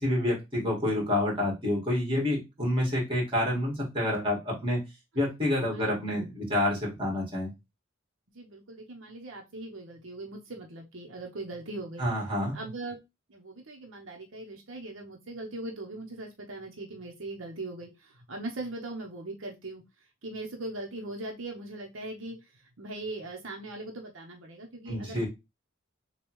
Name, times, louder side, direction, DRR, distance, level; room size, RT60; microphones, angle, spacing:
voice 1, 0.0-4.8 5.1-7.5 12.0-12.6 24.9-25.3, left 1 dB, 25° right, -2 dB, 2.1 m, -28 dB
voice 2, 5.7-6.1 8.3-12.1 12.5-13.0 13.3-19.8 20.2-22.4 22.8-25.2, right 2 dB, 75° right, 1 dB, 0.9 m, -40 dB
6.6 x 2.3 x 3.1 m, 0.23 s
head